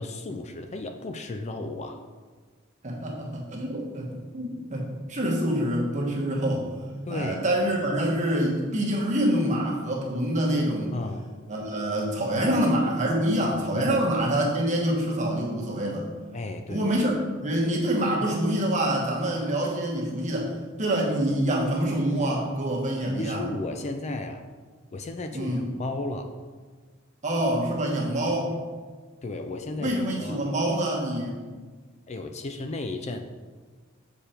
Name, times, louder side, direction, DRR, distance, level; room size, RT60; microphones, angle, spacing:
voice 1, 0.0-2.0 7.1-7.4 10.9-11.3 12.4-12.6 13.7-13.9 16.3-16.9 23.2-24.4 24.9-26.3 29.2-30.4 32.1-33.2, left 2 dB, 35° left, 6 dB, 0.4 m, -34 dB
voice 2, 2.8-6.7 7.1-10.9 11.5-16.1 16.7-17.1 17.4-20.5 20.8-23.4 25.3-25.6 27.2-28.5 29.8-31.3, right 1 dB, 35° right, -2 dB, 1.4 m, -26 dB
6.8 x 5.1 x 4.4 m, 1.4 s
head